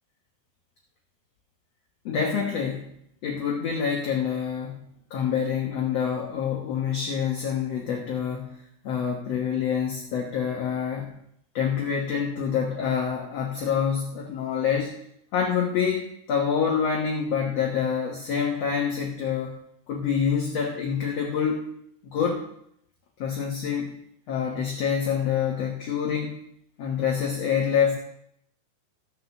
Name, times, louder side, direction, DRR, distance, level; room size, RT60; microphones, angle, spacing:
voice 1, 2.1-2.9 3.2-8.5 8.8-11.1 11.5-15.0 15.3-19.6 19.9-21.7 22.0-22.4 23.2-24.0 24.3-26.4 26.8-27.9, left 7 dB, 60° left, 0 dB, 1.9 m, -26 dB
13.0 x 6.5 x 7.1 m, 0.73 s
omnidirectional pair, 4.3 m